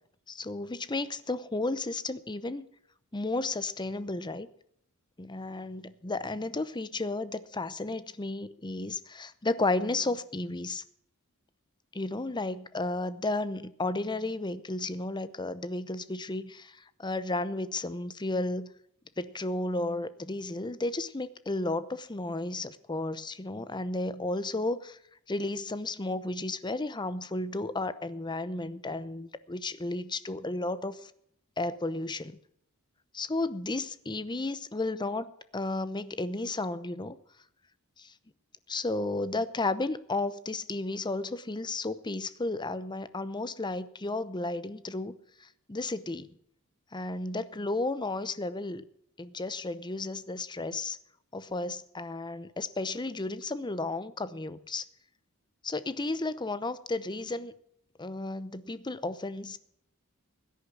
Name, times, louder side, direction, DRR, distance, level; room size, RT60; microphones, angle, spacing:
voice 1, 0.3-2.7 3.1-4.5 5.2-10.8 11.9-18.7 19.2-25.0 25.3-31.1 31.6-32.4 33.1-37.2 38.0-38.1 38.7-46.3 46.9-48.8 49.2-51.0 51.3-54.9 55.6-57.5 58.0-59.6, left 2 dB, 20° left, 15 dB, 0.8 m, -33 dB
16.5 x 10.0 x 6.1 m, 0.70 s
head